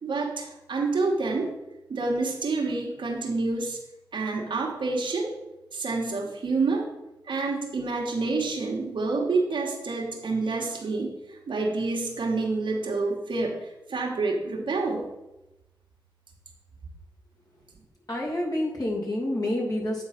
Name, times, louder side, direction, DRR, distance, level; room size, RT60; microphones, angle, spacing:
voice 1, 0.0-1.5 1.9-3.8 4.1-5.3 5.7-6.9 7.3-13.6 13.9-15.0, right 3 dB, 80° right, 0 dB, 1.5 m, -28 dB
voice 2, 18.1-20.0, left 1 dB, 50° left, -3 dB, 2.6 m, -28 dB
8.7 x 3.9 x 5.8 m, 0.97 s
cardioid pair, 45°, 8 cm